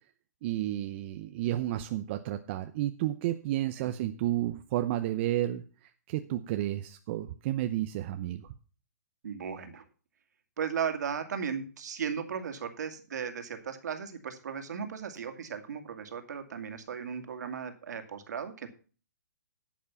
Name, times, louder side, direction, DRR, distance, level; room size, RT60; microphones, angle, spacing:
voice 1, 0.4-8.5, right 13 dB, 40° right, 8 dB, 0.7 m, -32 dB
voice 2, 9.2-9.8 10.6-18.7, right 7 dB, 70° right, 6 dB, 2.3 m, -36 dB
11.5 x 7.4 x 5.7 m, 0.38 s
hypercardioid pair, 135°, 10 cm